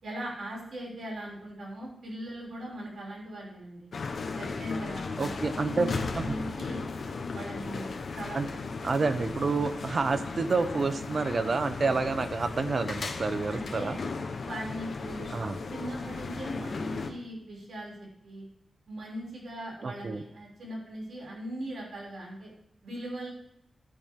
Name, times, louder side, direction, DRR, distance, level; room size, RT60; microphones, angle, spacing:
voice 1, 0.0-3.9 4.4-6.8 7.3-8.6 13.5-14.0 14.4-15.3 15.7-18.5 18.9-22.5 22.8-23.3, right 1 dB, 75° right, -4 dB, 6.5 m, -39 dB
sound 1, 3.9-17.1, left 4 dB, 60° left, 1.3 m, -36 dB
voice 2, 5.2-5.9 6.1-6.4 8.3-8.5 8.8-14.0 15.3-15.6 19.8-20.2, right 4 dB, 45° right, 10 dB, 0.9 m, -29 dB
14.0 x 12.0 x 3.8 m, 0.74 s
wide cardioid pair, 180°, 0 cm